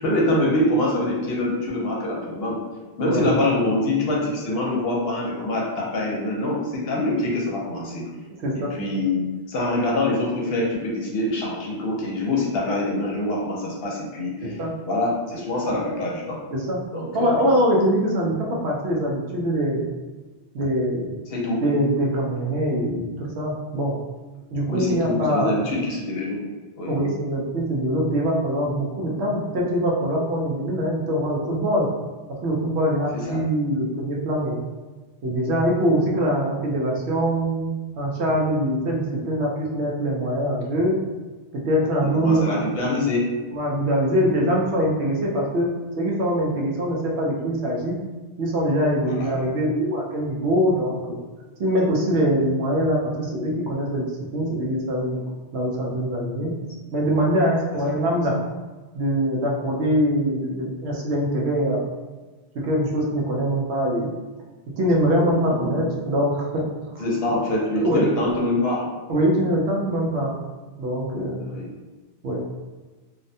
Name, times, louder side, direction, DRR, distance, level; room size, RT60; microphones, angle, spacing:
voice 1, 0.0-2.6 3.0-8.1 8.5-16.4 16.9-17.4 21.3-21.6 24.7-26.4 26.8-26.9 33.1-33.4 42.0-43.2 44.1-44.3 49.0-49.3 58.1-58.2 65.6-65.8 67.0-68.8 71.4-71.7, left 1 dB, 65° left, -3 dB, 0.8 m, -25 dB
voice 2, 14.4-14.7 16.5-16.8 17.1-19.8 20.5-21.1 21.6-23.0 23.4-24.0 24.5-25.5 26.9-31.9 32.4-34.6 35.2-37.7 38.0-41.0 41.6-42.6 43.5-45.7 46.0-47.9 48.4-51.2 51.6-55.2 55.5-56.5 56.9-58.3 58.9-61.9 62.6-64.1 64.8-66.6 67.7-68.1 69.1-70.4 70.8-71.4 72.2-72.4, equal, 75° right, -2 dB, 0.9 m, -23 dB
2.6 x 2.1 x 2.6 m, 1.3 s
omnidirectional pair, 1.2 m